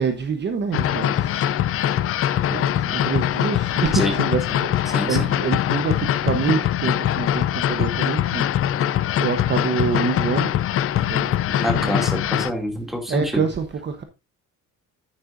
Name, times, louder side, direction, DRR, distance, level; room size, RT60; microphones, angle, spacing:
voice 1, 0.0-1.4 2.5-4.7 5.1-8.4 9.2-10.5 11.1-11.3 11.7-12.0 13.1-14.0, right 6 dB, 35° right, 0.9 m, -26 dB
sound 1, 0.7-12.5, left 11 dB, 45° left, 0.4 m, -22 dB
voice 2, 4.9-5.3 11.5-13.4, equal, ahead, 2.4 m, -26 dB
9.9 x 9.9 x 2.5 m
cardioid pair, 160°, 32 cm